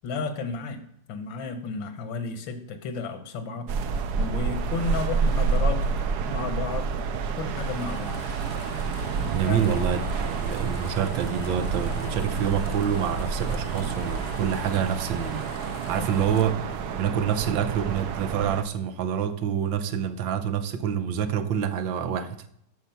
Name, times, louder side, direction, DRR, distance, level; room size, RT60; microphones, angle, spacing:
voice 1, 0.0-0.8 1.1-3.7 4.2-5.9 6.3-6.9 7.4-8.5 9.4-9.7, left 4 dB, 85° left, 1.8 m, -32 dB
sound 1, 3.7-18.6, right 5 dB, 65° right, 1.2 m, -29 dB
sound 2, 7.5-16.5, left 5 dB, 60° left, 0.6 m, -44 dB
voice 2, 9.3-15.5 15.9-16.6 16.9-22.5, right 8 dB, 85° right, 1.6 m, -27 dB
12.5 x 4.8 x 5.7 m
omnidirectional pair, 2.0 m